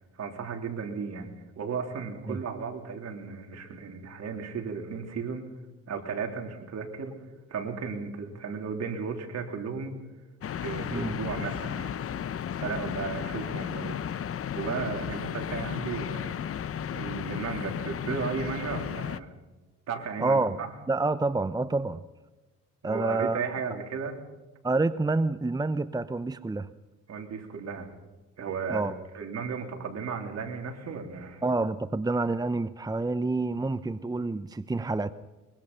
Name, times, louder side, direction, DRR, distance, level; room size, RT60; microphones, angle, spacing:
voice 1, 0.2-5.5 5.9-7.1 7.5-9.9 10.5-11.9 12.6-14.0 14.5-16.4 16.9-19.3 19.9-20.7 22.8-24.1 27.1-27.9 28.4-31.4, right 5 dB, 60° right, 3.7 m, -35 dB
sound 1, 10.4-19.2, left 9 dB, 50° left, 0.9 m, -34 dB
voice 2, 20.2-20.6 20.9-22.0 22.8-23.4 24.6-26.7 28.7-28.9 31.4-35.1, right 3 dB, 15° right, 0.7 m, -28 dB
23.0 x 22.5 x 5.7 m
cardioid pair, 90°, 30 cm